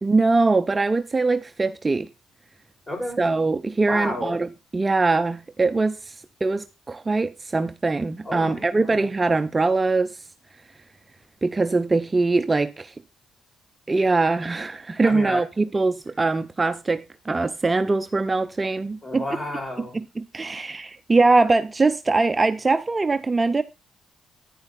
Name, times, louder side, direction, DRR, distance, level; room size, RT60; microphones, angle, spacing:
voice 1, 0.0-2.1 3.2-4.5 4.7-10.3 11.4-12.9 13.9-19.2 19.9-23.6, right 3 dB, 25° right, 0.5 m, -22 dB
voice 2, 2.9-3.2 3.9-4.3 8.2-9.0 15.0-15.7 19.0-20.0, left 1 dB, 20° left, 6.5 m, -31 dB
10.0 x 9.7 x 4.2 m
cardioid pair, 90°, 0 cm